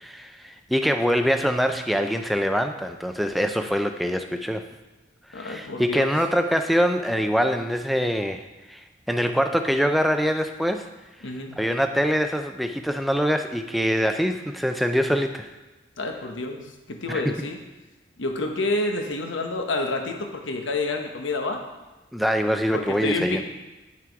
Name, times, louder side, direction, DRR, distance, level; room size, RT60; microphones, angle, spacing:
voice 1, 0.0-4.7 5.3-10.9 11.6-15.5 17.1-17.3 22.1-23.4, equal, ahead, 6 dB, 0.4 m, -24 dB
voice 2, 5.3-6.1 11.2-11.6 16.0-16.6 16.9-17.6 18.2-21.6 22.7-23.4, left 2 dB, 75° left, 3 dB, 1.1 m, -28 dB
9.6 x 6.0 x 4.6 m, 1.1 s
head